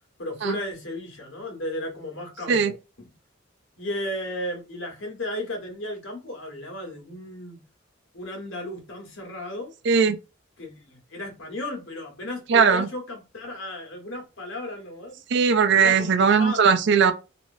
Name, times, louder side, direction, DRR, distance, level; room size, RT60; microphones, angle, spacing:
voice 1, 0.2-3.1 3.8-7.6 8.1-9.7 10.6-15.2 15.7-16.7, left 1 dB, 85° left, 1.4 m, -34 dB
voice 2, 9.8-10.2 12.5-12.9 15.3-17.1, right 6 dB, 65° right, 0.5 m, -19 dB
3.1 x 2.9 x 2.6 m
head